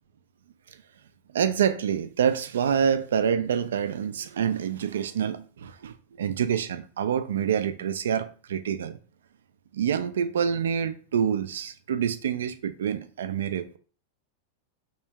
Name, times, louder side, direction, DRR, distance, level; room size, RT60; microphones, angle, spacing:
voice 1, 1.3-9.0 9.7-13.8, right 8 dB, 65° right, 0.4 m, -27 dB
3.4 x 2.9 x 3.4 m
figure-of-eight pair, 90°, 0 cm